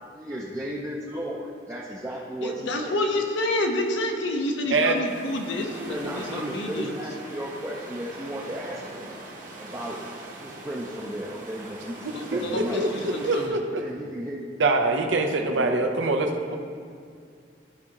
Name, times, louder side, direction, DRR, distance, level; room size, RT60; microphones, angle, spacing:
voice 1, 0.1-3.0 5.9-9.1 9.6-10.0 10.4-13.2 13.8-14.4 15.4-15.7, equal, 15° right, -4 dB, 0.5 m, -35 dB
voice 2, 2.4-7.0 12.1-13.6, left 1 dB, 75° left, 3 dB, 0.7 m, -29 dB
sound 1, 5.0-13.5, right 2 dB, 45° right, 1.1 m, -41 dB
voice 3, 12.0-12.4 12.8-13.8 14.6-16.6, right 2 dB, 75° right, 4 dB, 0.7 m, -24 dB
12.0 x 4.7 x 2.9 m, 2.2 s
head